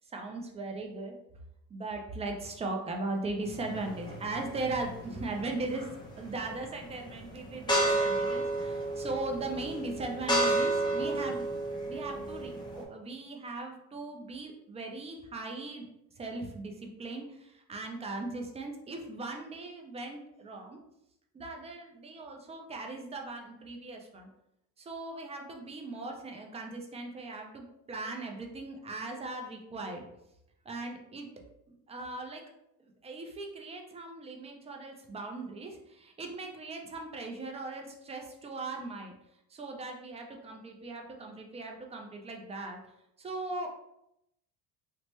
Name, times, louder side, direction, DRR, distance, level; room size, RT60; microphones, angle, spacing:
voice 1, 0.1-1.1 1.7-5.9 6.2-11.6 11.8-15.8 16.2-20.8 21.3-24.3 24.8-30.1 30.7-31.3 31.7-32.4 32.8-39.1 39.5-42.8 43.2-43.7, right 2 dB, 15° right, 2 dB, 0.3 m, -39 dB
sound 1, 3.5-12.8, right 1 dB, 10° left, 0.7 m, -32 dB
3.0 x 2.1 x 3.0 m, 0.82 s
supercardioid pair, 105°, 43 cm